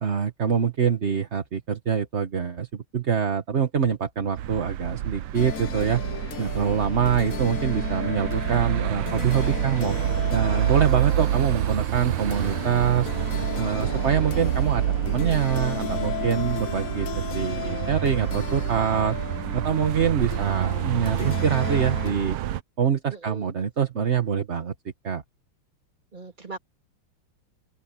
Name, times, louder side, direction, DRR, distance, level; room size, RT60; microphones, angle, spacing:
voice 1, 0.0-2.7 2.9-6.0 6.4-10.0 10.3-13.1 13.6-19.2 19.5-22.4 22.8-24.7 25.0-25.2, right 7 dB, 35° right, 1.3 m, -25 dB
sound 1, 4.4-22.6, right 12 dB, 90° right, 1.7 m, -28 dB
sound 2, 5.3-22.1, left 11 dB, 80° left, 0.7 m, -35 dB
sound 3, 10.5-15.6, left 1 dB, 15° left, 3.9 m, -42 dB
voice 2, 23.1-23.5 26.1-26.6, right 4 dB, 20° right, 2.9 m, -39 dB
open air
omnidirectional pair, 2.3 m